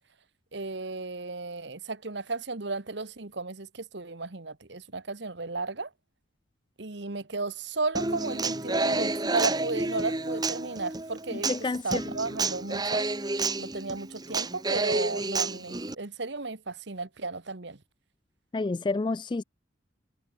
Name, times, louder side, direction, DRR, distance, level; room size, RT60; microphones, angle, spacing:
voice 1, 0.5-5.9 6.8-11.5 11.8-13.1 13.6-17.8, right 3 dB, 60° right, 1.3 m, -34 dB
Human voice / Acoustic guitar, 8.0-15.9, right 3 dB, 20° right, 1.2 m, -30 dB
voice 2, 11.5-12.0 18.5-19.4, left 3 dB, 25° left, 0.3 m, -29 dB
head